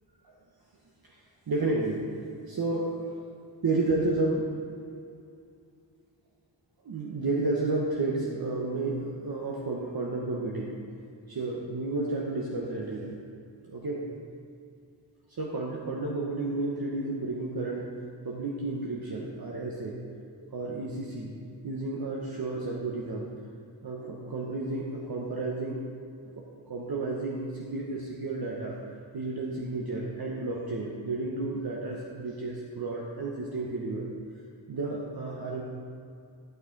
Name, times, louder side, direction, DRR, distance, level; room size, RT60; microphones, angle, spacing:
voice 1, 1.5-2.1 2.5-3.2 3.6-4.4 6.8-10.8 11.3-13.2 13.7-14.1 15.4-17.9 18.2-20.0 20.5-21.4 21.6-23.3 23.8-25.8 26.2-28.8 29.1-34.0 34.7-35.6, right 2 dB, 55° right, -3 dB, 1.0 m, -31 dB
12.0 x 6.2 x 4.0 m, 2.4 s
wide cardioid pair, 85°, 45 cm